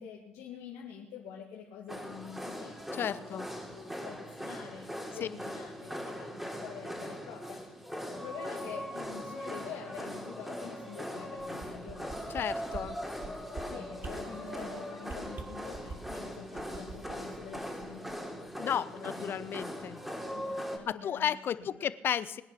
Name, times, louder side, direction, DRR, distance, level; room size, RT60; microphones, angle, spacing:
voice 1, 0.0-7.8 8.1-12.2 13.0-13.2 13.7-18.1 18.9-21.3 21.5-21.9, left 7 dB, 70° left, -1 dB, 2.1 m, -47 dB
sound 1, 1.9-20.8, equal, 5° right, 3.3 m, -40 dB
voice 2, 2.9-3.5 5.2-5.3 12.3-13.0 18.6-20.0 20.9-22.4, left 9 dB, 50° left, 17 dB, 0.8 m, -33 dB
sound 2, 11.4-12.4 12.7-12.8 13.2-13.6 14.0-14.1 14.5-14.7 15.0-16.2 16.5-18.1 18.5-18.6, right 4 dB, 40° right, 2.2 m, -44 dB
21.0 x 10.0 x 6.0 m, 1.0 s
hypercardioid pair, 60°, 5 cm